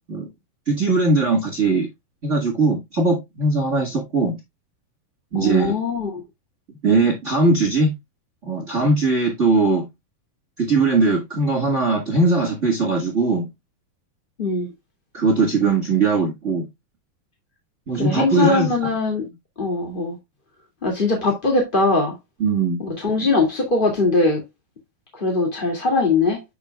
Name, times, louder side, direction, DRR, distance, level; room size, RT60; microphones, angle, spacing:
voice 1, 0.7-1.9 2.2-4.4 5.3-5.7 6.8-7.9 8.4-9.9 10.6-13.5 15.1-16.7 17.9-18.7 22.4-22.8, right 3 dB, 50° right, 0.8 m, -20 dB
voice 2, 5.3-6.2 14.4-14.7 17.9-19.3 19.6-20.2 20.8-22.2 22.8-24.4 25.1-26.4, left 3 dB, 20° left, 1.5 m, -21 dB
8.6 x 7.0 x 2.3 m
omnidirectional pair, 4.4 m